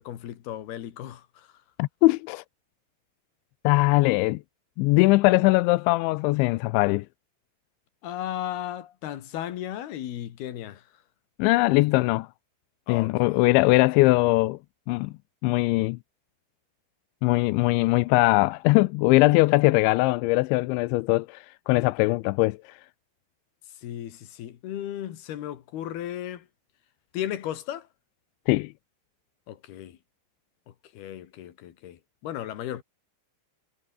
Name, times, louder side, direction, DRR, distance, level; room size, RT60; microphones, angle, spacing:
voice 1, 0.0-1.5 8.0-10.9 12.9-13.4 23.8-26.5 27.1-27.9 29.5-30.0 30.7-32.8, left 11 dB, 65° left, 3.6 m, -35 dB
voice 2, 1.8-2.4 3.6-4.4 4.8-7.1 11.4-12.3 12.9-14.6 14.9-15.1 15.4-16.0 17.2-22.8 28.5-28.7, left 22 dB, 85° left, 2.9 m, -21 dB
omnidirectional pair, 5.4 m